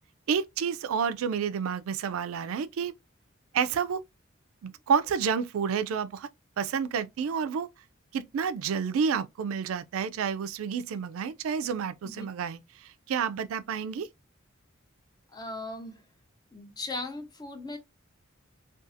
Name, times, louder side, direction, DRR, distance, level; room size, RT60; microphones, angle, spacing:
voice 1, 0.3-2.9 3.5-4.0 4.6-6.3 6.6-7.7 8.1-14.1, right 6 dB, 90° right, 0.3 m, -29 dB
voice 2, 15.3-16.0 16.5-17.8, left 2 dB, 20° left, 0.5 m, -38 dB
2.6 x 2.3 x 2.5 m
head